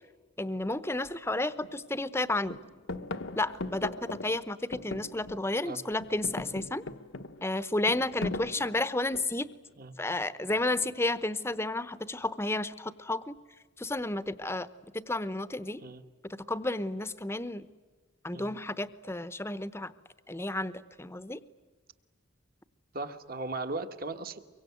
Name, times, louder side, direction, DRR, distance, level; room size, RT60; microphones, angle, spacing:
voice 1, 0.4-2.6 3.4-6.8 7.4-9.5 10.0-13.4 13.8-14.7 14.9-15.8 16.5-17.7 18.2-19.9 20.3-20.7 21.0-21.4, left 2 dB, 10° left, 14 dB, 0.8 m, -32 dB
sound 1, 1.0-1.2 1.6-2.2 2.5-5.6 5.9-9.5 10.5-11.0, left 2 dB, 75° left, 1.1 m, -39 dB
voice 2, 22.9-24.4, right 2 dB, 45° right, 8 dB, 1.4 m, -37 dB
24.0 x 23.5 x 9.4 m, 1.4 s
head